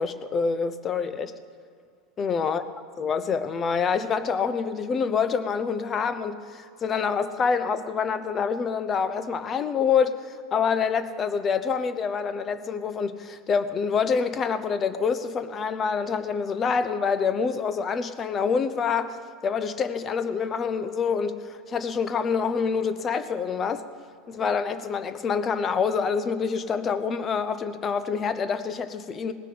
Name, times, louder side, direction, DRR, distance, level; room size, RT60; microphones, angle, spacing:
voice 1, 0.0-1.3 2.2-2.6 3.0-23.8 24.3-29.3, left 6 dB, 25° left, 13 dB, 0.8 m, -26 dB
18.0 x 6.4 x 9.5 m, 2.2 s
supercardioid pair, 135°, 0 cm